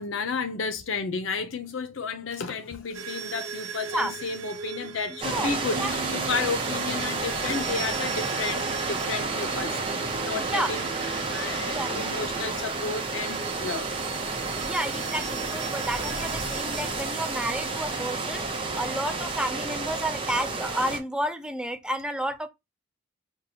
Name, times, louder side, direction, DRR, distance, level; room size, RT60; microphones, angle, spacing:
voice 1, 0.0-9.8 10.2-13.9, left 4 dB, 80° left, 0.6 m, -32 dB
sound 1, 2.9-18.6, right 6 dB, 90° right, 0.7 m, -39 dB
sound 2, 5.2-21.0, right 3 dB, 25° right, 0.8 m, -31 dB
voice 2, 10.5-10.8 11.6-12.1 14.6-22.5, right 1 dB, 5° right, 0.3 m, -31 dB
5.9 x 2.3 x 2.7 m
head